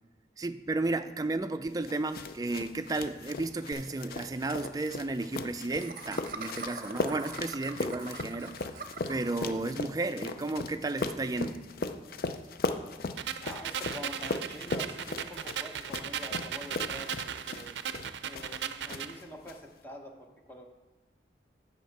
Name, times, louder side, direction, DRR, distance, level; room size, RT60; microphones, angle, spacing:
voice 1, 0.4-11.6, right 2 dB, 20° right, 10 dB, 0.3 m, -33 dB
sound 1, 1.9-18.6 18.9-19.5, left 3 dB, 55° left, 0.5 m, -38 dB
Laughter, 3.7-3.8 4.1-4.2 4.4-4.6 5.8-9.4, right 4 dB, 50° right, 0.7 m, -42 dB
sound 2, 13.2-19.2, right 8 dB, 90° right, 0.4 m, -37 dB
voice 2, 13.4-17.8 18.2-20.6, equal, 10° left, 2 dB, 1.0 m, -46 dB
9.2 x 6.4 x 4.7 m, 1.1 s
head